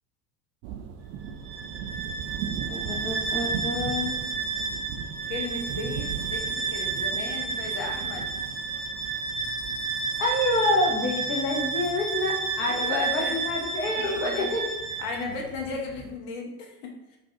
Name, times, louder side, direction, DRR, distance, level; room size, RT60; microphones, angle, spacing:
sound 1, 0.6-16.1, right 7 dB, 45° right, 0.5 m, -40 dB
Bowed string instrument, 1.4-15.3, right 4 dB, 60° right, 1.3 m, -31 dB
voice 1, 2.7-4.1 10.2-14.6, left 2 dB, 25° left, -1 dB, 0.8 m, -27 dB
voice 2, 5.3-8.3 12.7-13.4 13.9-14.5 15.0-17.2, left 3 dB, 55° left, 1 dB, 0.9 m, -35 dB
5.3 x 2.3 x 2.8 m, 0.97 s
hypercardioid pair, 80°, 49 cm